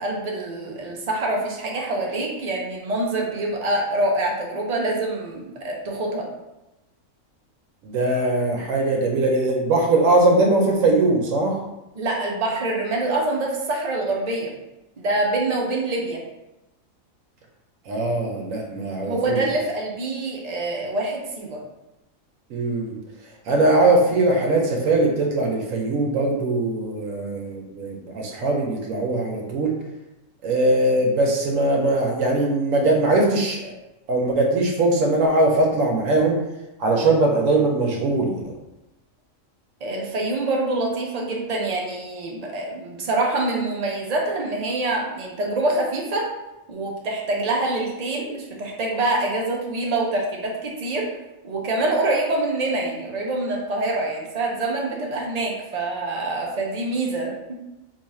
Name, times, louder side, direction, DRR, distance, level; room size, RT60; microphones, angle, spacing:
voice 1, 0.0-6.3 11.9-14.5 15.0-16.2 19.0-21.6 39.8-46.2 46.7-51.1 51.4-57.6, right 2 dB, 55° right, -2 dB, 0.4 m, -25 dB
voice 2, 7.8-11.6 17.9-19.4 22.5-23.0 23.5-29.8 30.4-33.8 34.1-36.4 36.8-38.4, right 2 dB, 75° right, 1 dB, 0.9 m, -21 dB
2.7 x 2.4 x 4.1 m, 0.97 s
omnidirectional pair, 1.4 m